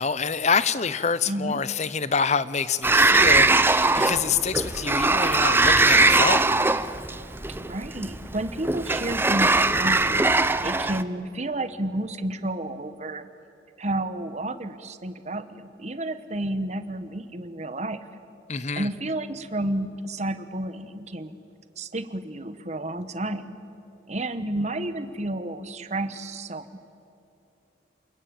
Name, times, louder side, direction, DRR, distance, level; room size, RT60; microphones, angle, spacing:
voice 1, 0.0-6.5 18.5-18.9, left 5 dB, 35° left, 0.8 m, -26 dB
voice 2, 1.3-1.6 7.5-13.3 13.8-18.0 18.8-21.4 21.8-23.6 24.1-26.8, right 1 dB, 35° right, 1.2 m, -31 dB
Sliding door, 2.8-11.0, right 3 dB, 10° right, 0.5 m, -21 dB
29.0 x 21.0 x 8.8 m
head